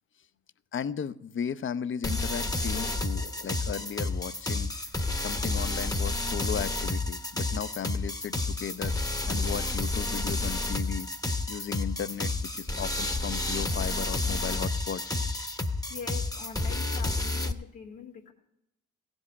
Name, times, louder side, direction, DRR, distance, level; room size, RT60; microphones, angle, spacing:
voice 1, 0.7-4.9 5.2-8.9 9.3-15.0, left 8 dB, 40° left, 16 dB, 0.6 m, -36 dB
sound 1, 2.0-17.5, left 2 dB, 10° left, 0.9 m, -30 dB
voice 2, 2.7-3.5 9.2-9.5 15.9-18.3, left 6 dB, 90° left, 0 dB, 1.5 m, -43 dB
15.5 x 5.4 x 8.4 m, 0.84 s
supercardioid pair, 45°, 30 cm